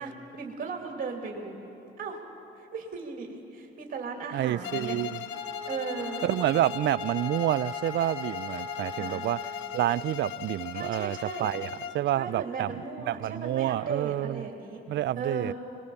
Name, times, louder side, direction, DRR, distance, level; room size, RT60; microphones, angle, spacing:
voice 1, 0.0-1.6 2.0-2.2 2.5-5.0 5.6-6.2 9.0-9.2 10.7-11.5 12.1-14.8 15.1-15.5, right 5 dB, 45° right, 2.5 m, -36 dB
voice 2, 4.3-5.2 6.2-9.4 9.7-12.7 13.1-14.5 14.9-15.5, right 13 dB, 65° right, 0.4 m, -28 dB
Bowed string instrument, 4.6-12.1, left 9 dB, 80° left, 0.7 m, -38 dB
sound 1, 5.3-10.0, left 4 dB, 25° left, 5.7 m, -40 dB
22.5 x 20.0 x 7.0 m
cardioid pair, 90°, 20 cm